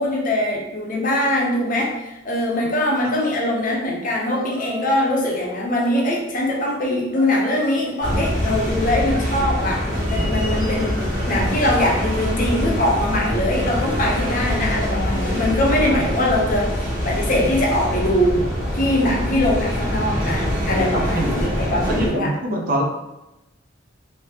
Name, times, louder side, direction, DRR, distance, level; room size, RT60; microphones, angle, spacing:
voice 1, 0.0-10.9 11.3-18.4 18.7-22.3, left 1 dB, 40° left, -2 dB, 0.7 m, -22 dB
Singing, 4.2-5.1 5.4-6.7 7.1-8.4 9.1-10.4 11.1-12.3 13.2-14.4 15.2-16.5, right 1 dB, 60° right, 1.4 m, -39 dB
sound 1, 8.0-22.1, equal, 20° right, 1.3 m, -24 dB
voice 2, 21.1-21.5 21.9-22.8, right 1 dB, 40° right, 0 dB, 0.5 m, -25 dB
3.3 x 2.8 x 2.9 m, 0.95 s
head